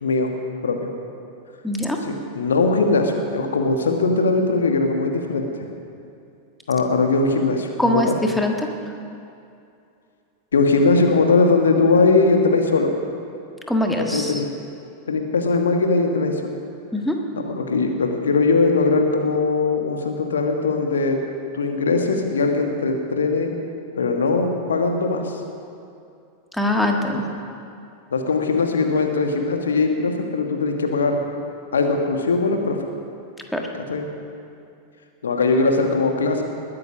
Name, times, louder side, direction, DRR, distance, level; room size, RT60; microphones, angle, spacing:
voice 1, 0.0-0.3 0.6-0.9 2.0-5.4 6.7-8.2 10.5-13.0 14.1-14.5 15.1-16.4 17.3-21.2 21.5-23.5 23.9-25.4 28.1-31.2 31.7-32.8 33.7-34.1 35.2-36.4, left 3 dB, 70° left, 4 dB, 1.5 m, -20 dB
voice 2, 1.6-2.0 7.8-8.5 13.7-14.4 16.9-17.2 26.5-27.3 33.5-33.6, left 1 dB, ahead, 1 dB, 1.6 m, -22 dB
21.0 x 9.6 x 6.2 m, 2.5 s
figure-of-eight pair, 90°, 0 cm